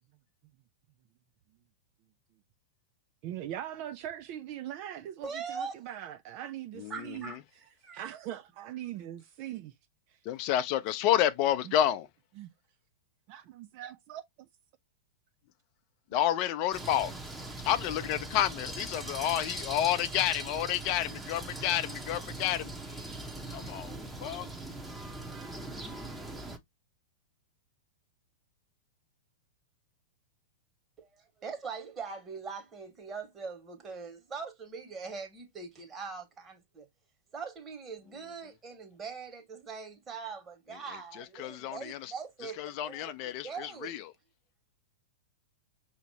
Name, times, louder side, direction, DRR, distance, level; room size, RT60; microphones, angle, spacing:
voice 1, 3.2-7.3 7.9-9.7 10.1-10.2 11.7-11.8 12.4-12.5 13.3-14.2, right 12 dB, 45° right, 0.4 m, -41 dB
voice 2, 5.2-5.8 6.9-7.4 7.8-8.1 31.0-36.9 37.3-44.0, right 5 dB, 25° right, 1.7 m, -42 dB
voice 3, 6.8-7.3 10.2-12.1 16.1-17.1 17.6-22.7 23.5-24.5 41.2-42.1 42.6-44.0, left 11 dB, 45° left, 0.6 m, -30 dB
sound 1, 16.7-26.6, right 2 dB, 10° right, 1.0 m, -41 dB
6.0 x 2.9 x 2.8 m
hypercardioid pair, 105°, 0 cm